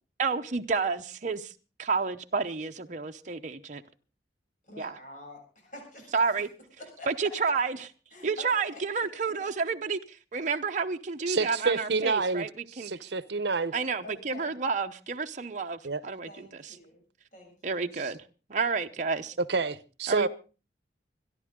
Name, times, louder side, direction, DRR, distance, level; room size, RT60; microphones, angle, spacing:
voice 1, 0.2-1.5 1.8-3.8 4.8-5.0 6.1-6.5 7.1-7.8 8.2-12.5 12.8-12.9 13.7-16.7 17.6-18.2 18.5-19.4 20.1-20.3, right 5 dB, 45° right, 0.8 m, -30 dB
voice 2, 4.6-6.1 6.8-7.3 8.1-8.8 14.0-14.5 16.3-17.0 17.3-17.9, left 1 dB, 45° left, 7.5 m, -46 dB
voice 3, 11.3-12.5 12.8-13.7 15.8-16.0 19.5-20.3, right 4 dB, 70° right, 0.8 m, -28 dB
25.5 x 11.0 x 3.7 m
head